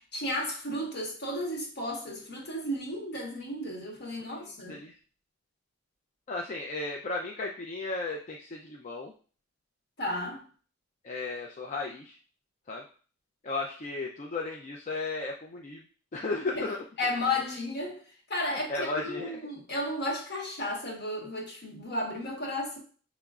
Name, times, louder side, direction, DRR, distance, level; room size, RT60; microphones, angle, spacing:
voice 1, 0.1-4.8 10.0-10.4 16.5-16.6 17.0-18.0 18.3-22.8, left 1 dB, 60° left, 1.3 m, -33 dB
voice 2, 4.1-4.9 6.3-9.1 11.0-12.2 12.7-12.8 13.4-15.8 16.1-16.8 18.5-19.3, left 3 dB, 40° left, 0.4 m, -35 dB
6.7 x 3.0 x 2.4 m
head